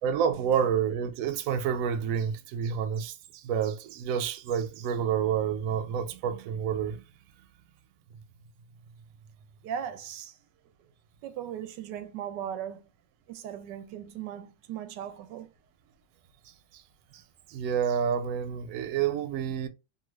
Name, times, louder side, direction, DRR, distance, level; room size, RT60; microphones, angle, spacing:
voice 1, 0.0-7.0 17.1-17.2 17.5-19.7, right 8 dB, 70° right, 0.8 m, -29 dB
voice 2, 9.6-10.4 11.2-12.8 13.3-15.5, right 9 dB, 85° right, 1.2 m, -38 dB
2.7 x 2.5 x 3.1 m
omnidirectional pair, 1.8 m